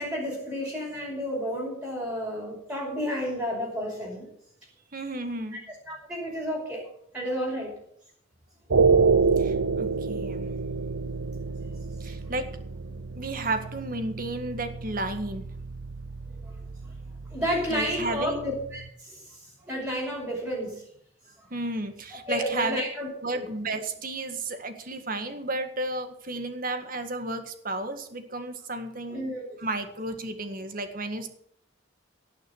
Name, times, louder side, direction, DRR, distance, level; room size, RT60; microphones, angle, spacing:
voice 1, 0.0-4.3 5.5-6.8 7.1-7.7 12.0-12.1 16.4-16.5 17.3-19.4 19.6-20.8 22.1-23.1 23.3-23.5 29.1-29.4, equal, 5° right, -5 dB, 5.5 m, -31 dB
voice 2, 4.9-5.6 9.4-10.5 12.0-12.5 13.2-15.5 17.7-18.5 21.5-22.8 23.2-29.2 29.6-31.3, right 2 dB, 45° right, 7 dB, 1.8 m, -32 dB
sound 1, 8.7-18.9, right 4 dB, 70° right, 0.8 m, -28 dB
18.0 x 6.5 x 8.1 m, 0.69 s
head